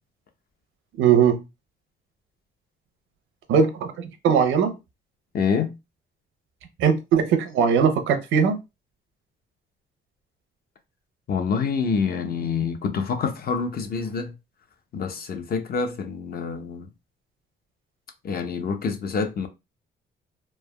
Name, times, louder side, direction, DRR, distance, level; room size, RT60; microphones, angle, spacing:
voice 1, 1.0-1.4 3.5-4.7 6.8-8.6, right 7 dB, 80° right, 0.6 m, -20 dB
voice 2, 5.3-5.7 11.3-14.3 14.9-16.9 18.2-19.5, left 5 dB, 50° left, 0.7 m, -26 dB
3.3 x 2.0 x 2.2 m
cardioid pair, 90°, 20 cm